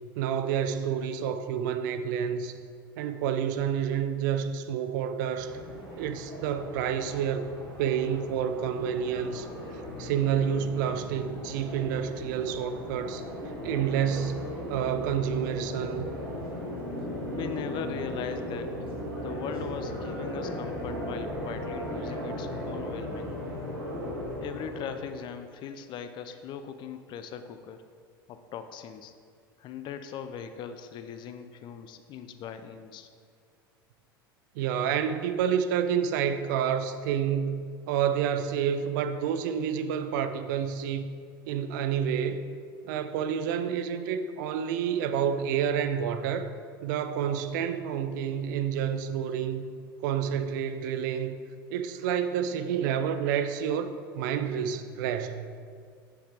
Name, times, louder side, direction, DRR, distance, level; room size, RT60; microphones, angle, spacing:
voice 1, 0.2-2.5 3.0-5.6 5.9-7.5 7.8-9.5 10.0-13.2 13.6-16.1 34.6-41.1 41.5-42.4 42.8-46.5 46.8-49.6 50.0-51.4 51.7-55.5, right 8 dB, 55° right, 10 dB, 0.5 m, -29 dB
sound 1, 5.3-25.2, left 1 dB, 80° right, 2.0 m, -37 dB
voice 2, 17.3-18.8 19.2-23.4 24.4-27.8 28.3-29.1 29.6-33.1, left 7 dB, 40° left, 9 dB, 0.6 m, -40 dB
8.2 x 7.0 x 3.5 m, 2.1 s
figure-of-eight pair, 75°, 12 cm